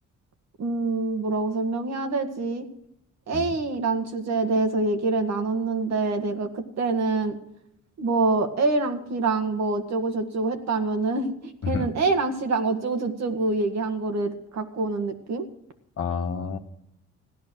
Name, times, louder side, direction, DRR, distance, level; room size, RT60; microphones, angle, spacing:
voice 1, 0.6-2.7 3.3-7.4 8.0-15.5, right 3 dB, 60° right, 6 dB, 1.8 m, -26 dB
voice 2, 16.0-16.6, left 5 dB, 50° left, 6 dB, 1.5 m, -29 dB
16.0 x 11.0 x 6.3 m, 0.78 s
cardioid pair, 90°, 30 cm